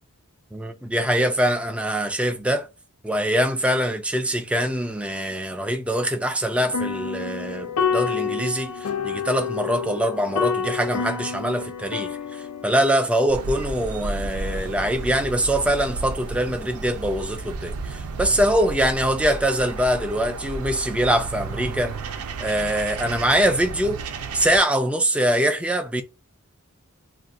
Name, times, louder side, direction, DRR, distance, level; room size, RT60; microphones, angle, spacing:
voice 1, 0.5-2.6 3.0-22.0 22.4-24.0 24.3-26.0, equal, 5° right, 0.3 m, -23 dB
sound 1, 6.5-13.1, left 6 dB, 75° left, 0.4 m, -28 dB
sound 2, 13.3-24.6, right 3 dB, 75° right, 0.5 m, -33 dB
2.5 x 2.3 x 3.5 m
head